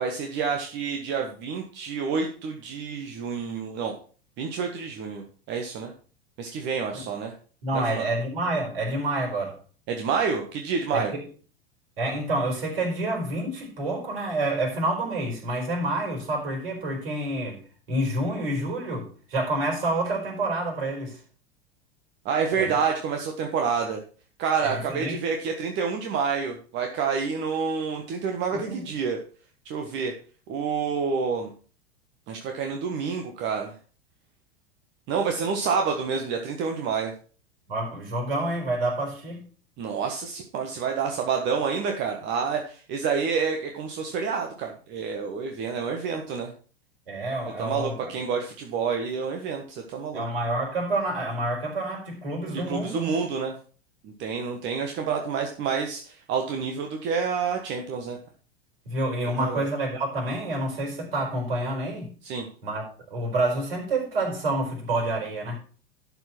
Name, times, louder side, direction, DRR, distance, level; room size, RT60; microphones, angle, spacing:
voice 1, 0.0-3.9 4.4-5.9 6.4-7.3 7.7-8.1 9.9-11.1 22.2-24.0 24.4-29.2 29.6-30.1 30.5-31.5 32.3-33.7 35.1-37.1 39.8-46.5 47.6-50.2 52.5-53.5 54.0-58.2 59.4-59.6 62.2-62.5, right 6 dB, 35° right, 3 dB, 1.4 m, -28 dB
voice 2, 7.6-9.6 10.9-11.2 12.0-17.6 17.9-21.2 22.6-22.7 24.6-25.2 28.5-28.8 37.7-39.4 47.1-48.2 50.1-53.2 58.8-62.1 62.6-65.6, right 1 dB, 60° right, 1 dB, 4.8 m, -28 dB
12.0 x 4.8 x 6.0 m, 0.40 s
figure-of-eight pair, 85°, 31 cm